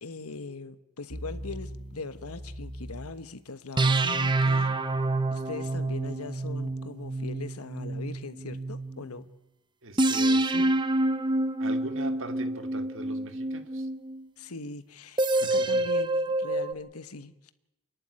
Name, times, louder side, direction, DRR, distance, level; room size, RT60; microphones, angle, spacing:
voice 1, 0.0-4.8 5.3-9.3 14.4-17.5, left 3 dB, 80° left, 1.2 m, -41 dB
sound 1, 1.1-3.1 3.8-9.0 10.0-14.2 15.2-16.7, right 2 dB, 20° right, 0.8 m, -28 dB
voice 2, 9.8-10.8 11.6-13.9 15.3-15.9, right 1 dB, 60° right, 1.7 m, -41 dB
28.0 x 11.0 x 9.6 m
head